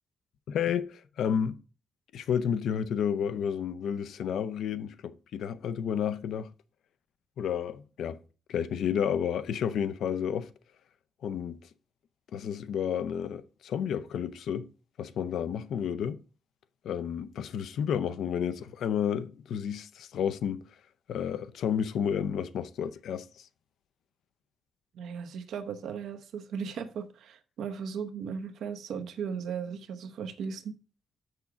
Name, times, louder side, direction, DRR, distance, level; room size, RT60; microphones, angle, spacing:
voice 1, 0.5-1.6 2.1-6.5 7.4-8.2 8.5-10.5 11.2-11.6 12.3-14.7 15.0-16.2 16.8-20.6 21.1-23.5, left 8 dB, 80° left, 0.5 m, -31 dB
voice 2, 24.9-30.7, right 6 dB, 85° right, 0.9 m, -37 dB
7.0 x 6.4 x 4.9 m
wide cardioid pair, 175°, 0 cm